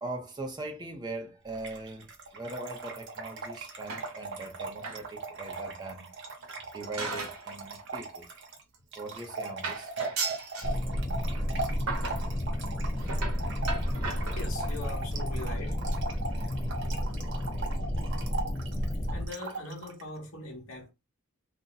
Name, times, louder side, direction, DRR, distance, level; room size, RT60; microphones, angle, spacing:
voice 1, 0.0-6.1 6.7-8.3 9.0-9.9, right 2 dB, 20° right, 0.6 m, -40 dB
Trickle dribble / Fill (with liquid), 1.5-20.0, right 3 dB, 55° right, 0.7 m, -40 dB
sound 1, 3.9-4.5 4.8-5.1 5.5-5.6 6.4-7.5 7.8-8.0 8.8-8.9 9.2-9.3 9.6-10.8 11.3-11.5 11.9-12.3 13.0-14.8 15.4-15.6 15.9-16.0 16.3-16.4 16.6-16.7, right 4 dB, 85° right, 0.9 m, -37 dB
sound 2, 10.6-19.3, equal, 25° left, 0.4 m, -31 dB
voice 2, 14.4-15.8 16.3-16.5 19.1-20.9, left 2 dB, 65° left, 1.0 m, -41 dB
2.6 x 2.1 x 3.9 m
head